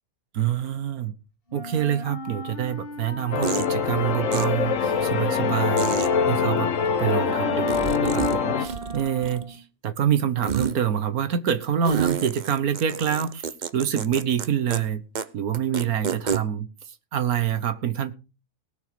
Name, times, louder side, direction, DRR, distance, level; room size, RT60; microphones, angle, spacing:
voice 1, 0.3-1.1 1.5-6.7 7.0-13.5 13.7-15.0 15.3-16.7 17.1-18.1, right 9 dB, 85° right, 12 dB, 1.6 m, -26 dB
Wind instrument woodwind instrument, 1.5-9.7, left 2 dB, 40° left, 1.9 m, -39 dB
sound 1, 2.5-2.6 3.4-3.7 4.3-4.4 5.8-6.1 7.7-8.4 8.6-9.5 10.4-10.8 11.8-14.5 14.7-14.8 15.2-15.3 15.5-16.4, right 7 dB, 40° right, 0.7 m, -28 dB
sound 2, 3.3-8.7, left 6 dB, 60° left, 1.4 m, -24 dB
19.0 x 6.7 x 5.1 m, 0.32 s
omnidirectional pair, 1.5 m